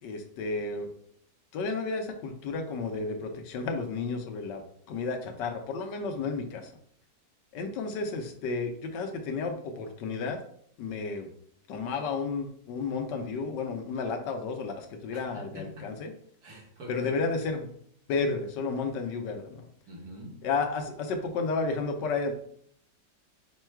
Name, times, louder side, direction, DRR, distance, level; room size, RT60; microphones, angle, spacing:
voice 1, 0.0-0.9 1.5-6.7 7.5-10.4 10.8-11.3 11.7-16.1 16.9-17.7 18.1-19.6 20.4-22.3, left 4 dB, 80° left, 5 dB, 1.3 m, -32 dB
voice 2, 15.1-15.9 16.4-17.1 19.9-20.4, equal, 65° right, -1 dB, 1.6 m, -44 dB
5.3 x 2.3 x 4.4 m, 0.65 s
omnidirectional pair, 1.9 m